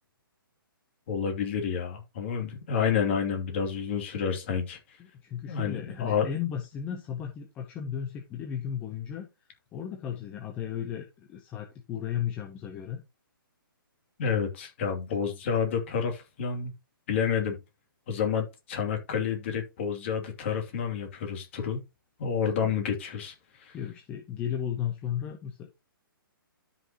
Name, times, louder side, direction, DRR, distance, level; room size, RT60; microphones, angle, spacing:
voice 1, 1.1-4.8 5.5-6.3 14.2-16.7 17.1-17.6 18.1-21.8 22.2-23.3 23.6-23.8, left 7 dB, 30° left, 2.6 m, -29 dB
voice 2, 5.0-9.3 9.7-13.0 23.7-25.7, left 9 dB, 10° left, 0.7 m, -35 dB
12.5 x 5.6 x 2.9 m
hypercardioid pair, 170°, 12 cm